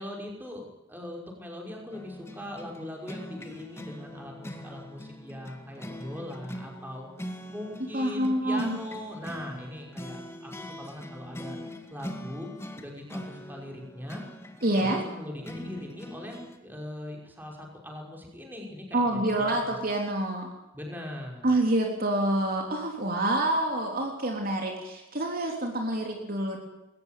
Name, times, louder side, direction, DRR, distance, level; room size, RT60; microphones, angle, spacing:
voice 1, 0.0-7.1 7.5-11.6 11.9-12.5 12.8-14.2 14.8-19.7 20.7-21.4, left 1 dB, 10° right, 0 dB, 5.7 m, -40 dB
sound 1, 1.9-16.6, equal, 10° left, 2.2 m, -42 dB
voice 2, 7.9-8.8 14.6-15.0 18.9-20.5 21.4-26.6, right 1 dB, 45° right, 1 dB, 3.6 m, -27 dB
21.5 x 19.0 x 9.4 m, 0.95 s
head